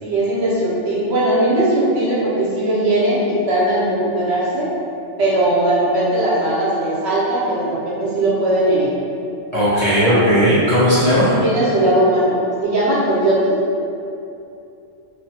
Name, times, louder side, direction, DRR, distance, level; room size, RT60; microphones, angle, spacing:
voice 1, 0.0-4.7 5.2-8.9 9.9-10.2 11.4-13.6, right 1 dB, 65° right, -7 dB, 0.9 m, -19 dB
voice 2, 9.5-11.3, equal, 45° left, -12 dB, 0.5 m, -15 dB
2.9 x 2.2 x 2.7 m, 2.7 s
omnidirectional pair, 1.3 m